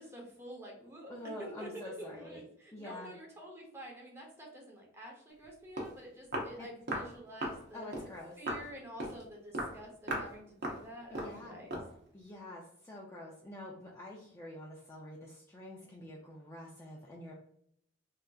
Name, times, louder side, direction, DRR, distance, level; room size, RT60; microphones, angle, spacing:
voice 1, 0.0-1.1 1.4-7.9 8.4-11.7, equal, 15° right, -1 dB, 0.7 m, -48 dB
voice 2, 1.1-2.4 2.7-3.1 6.6-6.7 7.7-8.4 11.1-11.6 12.1-17.3, left 1 dB, 15° left, -4 dB, 0.4 m, -47 dB
Walk footsteps, 5.4-5.5 5.8-5.9 6.3-6.5 6.9-7.1 7.4-7.6 7.9-8.1 8.5-8.7 9.0-9.2 9.5-9.8 10.1-10.3 10.6-10.8 11.1-11.4 11.7-11.9, right 1 dB, 55° right, 0.8 m, -37 dB
3.4 x 2.7 x 2.3 m, 0.68 s
head